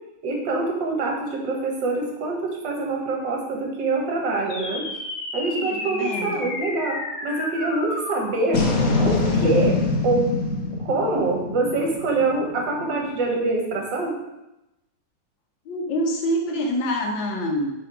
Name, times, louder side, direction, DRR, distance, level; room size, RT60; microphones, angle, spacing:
voice 1, 0.2-4.8 5.3-8.7 9.0-10.3 10.9-14.1, right 3 dB, 75° right, -1 dB, 1.9 m, -25 dB
sound 1, 4.5-13.1, left 3 dB, 55° left, 1.3 m, -26 dB
voice 2, 5.5-6.5 15.7-17.7, equal, 85° left, 1 dB, 1.7 m, -26 dB
6.5 x 3.6 x 4.8 m, 0.92 s
omnidirectional pair, 2.0 m